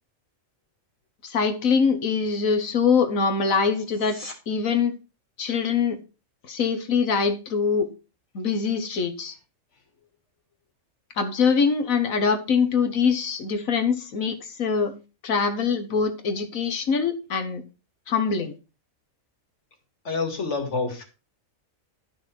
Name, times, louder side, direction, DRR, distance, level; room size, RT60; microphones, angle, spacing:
voice 1, 1.2-4.2 4.5-4.9 5.4-6.0 6.5-7.9 8.3-9.3 11.2-14.9 15.2-17.6 18.1-18.5, left 5 dB, 90° left, 1.7 m, -23 dB
sound 1, 3.8-4.4 15.8-15.9, left 1 dB, 25° left, 2.1 m, -41 dB
voice 2, 20.0-21.0, left 4 dB, 60° left, 2.4 m, -27 dB
11.5 x 6.2 x 4.5 m
omnidirectional pair, 1.4 m